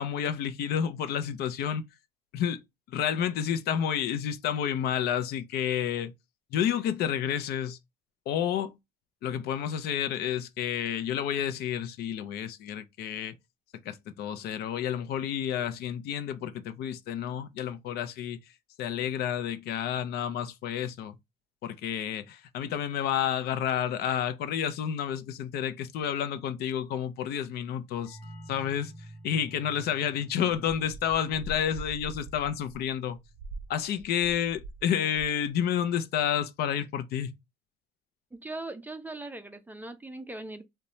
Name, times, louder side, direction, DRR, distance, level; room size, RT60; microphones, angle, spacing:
voice 1, 0.0-1.9 2.3-2.6 2.9-6.1 6.5-7.8 8.3-8.8 9.2-13.3 13.9-18.4 18.8-21.1 21.6-28.2 28.5-28.9 29.2-33.2 33.7-37.4, left 9 dB, 70° left, 0.5 m, -30 dB
sound 1, 28.1-33.5, right 1 dB, 50° left, 0.9 m, -50 dB
sound 2, 30.6-34.9 35.1-35.5, right 2 dB, 60° right, 0.6 m, -44 dB
voice 2, 38.3-40.6, right 2 dB, 10° right, 0.4 m, -40 dB
2.7 x 2.1 x 2.9 m
cardioid pair, 110°, 17 cm